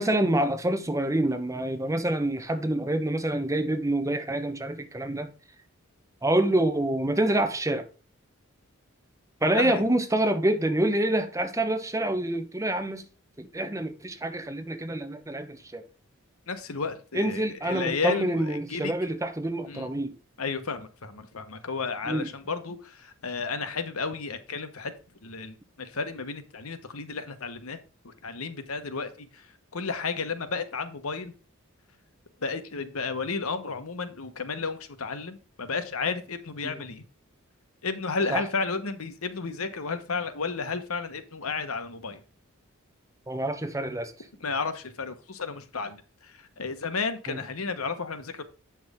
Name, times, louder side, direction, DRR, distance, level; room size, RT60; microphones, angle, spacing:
voice 1, 0.0-5.3 6.2-7.9 9.4-13.0 13.4-15.9 17.1-20.1 22.1-22.3 36.6-36.8 38.3-38.4 43.3-44.1 47.3-47.4, right 1 dB, 15° right, 0.9 m, -27 dB
voice 2, 9.5-9.9 16.5-18.9 19.7-19.9 20.4-24.9 25.2-27.8 28.0-31.3 32.4-37.0 37.8-42.2 44.4-48.4, left 4 dB, 80° left, 1.1 m, -32 dB
8.4 x 6.1 x 3.6 m
head